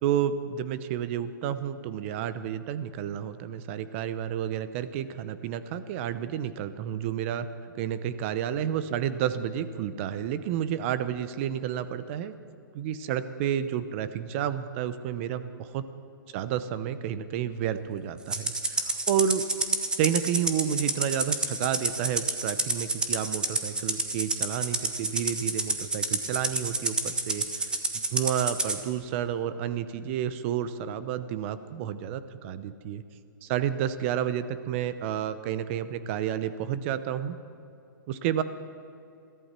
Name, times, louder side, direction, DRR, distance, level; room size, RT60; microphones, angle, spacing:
voice 1, 0.0-7.5 7.7-12.3 12.7-15.9 16.3-19.4 20.0-33.0 33.4-37.4 38.1-38.4, right 9 dB, 35° right, 13 dB, 0.8 m, -30 dB
Rattle (instrument), 18.3-28.8, right 3 dB, 5° right, 0.9 m, -29 dB
21.5 x 14.5 x 4.4 m, 2.7 s
hypercardioid pair, 140°, 12 cm